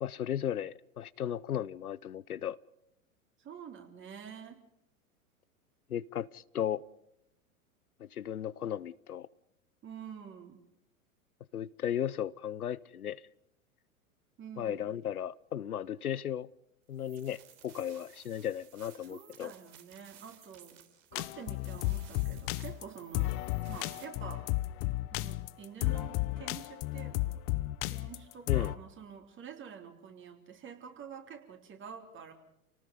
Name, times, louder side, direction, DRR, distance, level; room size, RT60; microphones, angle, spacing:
voice 1, 0.0-2.6 5.9-6.8 8.0-9.3 11.5-13.2 14.6-16.5 16.9-19.5 28.5-28.7, left 10 dB, 85° left, 0.7 m, -35 dB
voice 2, 3.4-4.6 9.8-10.6 14.4-14.9 19.0-20.8 21.1-23.4 23.7-24.5 25.1-27.4 27.9-32.3, right 7 dB, 25° right, 3.5 m, -48 dB
sound 1, 16.9-24.1, right 10 dB, 50° right, 3.5 m, -58 dB
sound 2, 21.1-28.8, left 19 dB, 35° left, 0.8 m, -33 dB
29.0 x 19.0 x 5.3 m
figure-of-eight pair, 95°, 43 cm